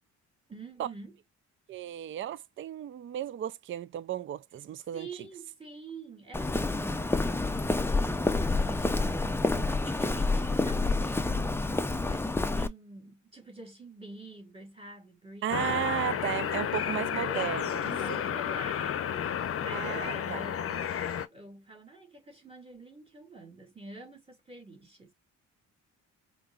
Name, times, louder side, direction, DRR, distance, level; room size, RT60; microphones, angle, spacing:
voice 1, 0.5-1.2 4.9-11.7 12.0-16.3 16.8-17.5 17.8-25.1, right 2 dB, 20° right, 2.4 m, -47 dB
voice 2, 1.7-5.1 15.4-18.2 19.7-20.4, right 11 dB, 40° right, 0.4 m, -34 dB
Walk footsteps, 6.3-12.7, left 2 dB, 10° left, 0.5 m, -28 dB
sound 1, 15.5-21.3, left 9 dB, 50° left, 0.7 m, -32 dB
5.1 x 2.9 x 2.4 m
cardioid pair, 90°, 30 cm